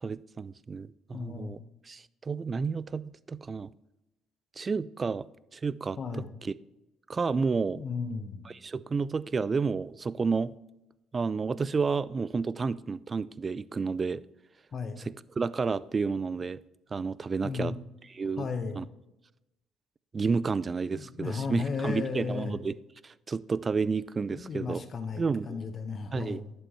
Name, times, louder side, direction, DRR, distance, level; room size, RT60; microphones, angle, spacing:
voice 1, 0.0-1.6 1.9-3.7 4.6-5.3 5.5-6.0 6.4-6.5 7.1-7.8 8.5-10.5 11.1-14.2 15.0-16.6 16.9-17.7 18.1-18.5 18.8-18.9 20.1-22.8 23.0-24.8 25.2-25.6 26.1-26.4, right 4 dB, 35° right, 19 dB, 0.3 m, -31 dB
voice 2, 1.1-1.6 6.0-6.3 7.7-8.5 14.7-15.0 17.4-17.7 18.4-18.8 20.9-22.6 24.3-26.5, left 5 dB, 45° left, 8 dB, 1.1 m, -35 dB
11.0 x 6.1 x 3.1 m, 0.93 s
hypercardioid pair, 50°, 0 cm